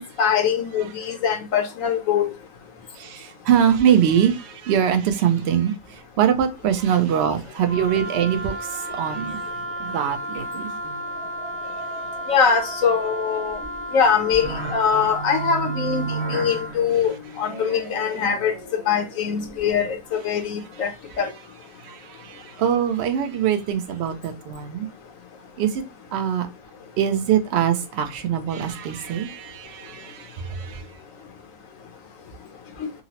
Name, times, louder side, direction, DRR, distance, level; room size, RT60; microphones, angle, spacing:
voice 1, 0.0-2.3 12.3-13.6 13.9-16.0 16.3-18.5 18.9-20.9 21.2-21.3, left 7 dB, 70° left, 1.0 m, -22 dB
voice 2, 3.0-5.7 6.2-9.4 9.8-10.7 21.8-24.9 25.6-25.8 26.1-26.5 27.0-30.8, right 9 dB, 60° right, 0.7 m, -23 dB
Wind instrument woodwind instrument, 7.7-16.8, right 1 dB, 45° left, 0.7 m, -33 dB
sound 1, 10.8-19.9, right 4 dB, 25° right, 0.6 m, -35 dB
3.8 x 2.0 x 2.7 m
omnidirectional pair, 1.5 m